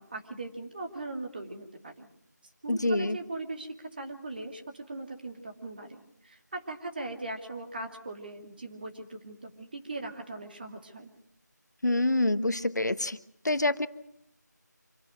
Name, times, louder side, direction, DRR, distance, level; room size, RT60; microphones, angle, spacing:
voice 1, 0.0-2.1 2.6-11.1, right 2 dB, 30° right, 3 dB, 2.4 m, -40 dB
voice 2, 2.7-3.2 11.8-13.2 13.4-13.9, left 2 dB, 70° left, 13 dB, 1.2 m, -26 dB
26.0 x 17.0 x 7.9 m, 0.75 s
figure-of-eight pair, 170°, 10 cm